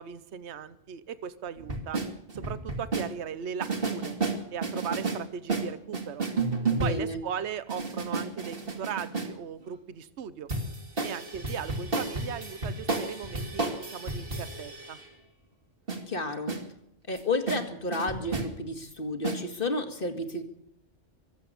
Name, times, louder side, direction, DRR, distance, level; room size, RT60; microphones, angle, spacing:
voice 1, 0.0-2.0 2.3-4.2 4.5-6.3 6.8-10.5 11.0-15.0, right 8 dB, 65° right, 15 dB, 1.2 m, -38 dB
sound 1, 1.6-3.1 3.6-5.2 5.5-7.1 7.7-9.3 10.5-15.1 15.9-16.0 16.5-16.6 17.2-17.3 17.5-17.6 17.9-18.5 19.2-19.4, right 3 dB, 50° right, 2.5 m, -32 dB
voice 2, 6.7-7.2 16.1-16.6 17.1-20.4, left 2 dB, 45° left, 8 dB, 2.2 m, -31 dB
24.5 x 8.2 x 6.8 m, 0.74 s
omnidirectional pair, 1.3 m